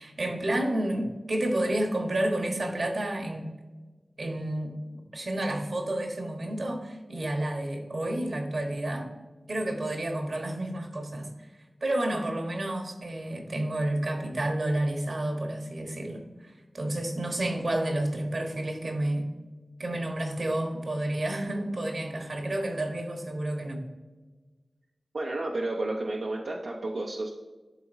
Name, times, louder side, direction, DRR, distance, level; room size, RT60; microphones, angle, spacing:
voice 1, 0.0-3.5 4.2-4.7 5.1-9.1 9.5-11.3 11.8-19.3 19.8-23.8, right 1 dB, 60° right, 3 dB, 1.2 m, -30 dB
voice 2, 25.1-27.3, right 2 dB, 85° right, -1 dB, 0.6 m, -31 dB
11.5 x 3.9 x 2.7 m, 1.3 s
wide cardioid pair, 70°, 0 cm